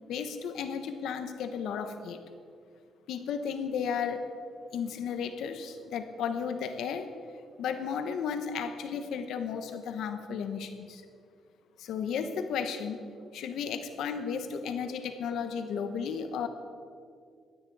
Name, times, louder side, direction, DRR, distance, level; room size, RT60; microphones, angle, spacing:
voice 1, 0.1-2.2 3.1-4.2 4.7-7.1 7.6-11.0 11.8-13.0 13.3-16.5, left 6 dB, 80° left, 8 dB, 1.0 m, -34 dB
17.0 x 13.0 x 4.7 m, 2.2 s
cardioid pair, 90°, 0 cm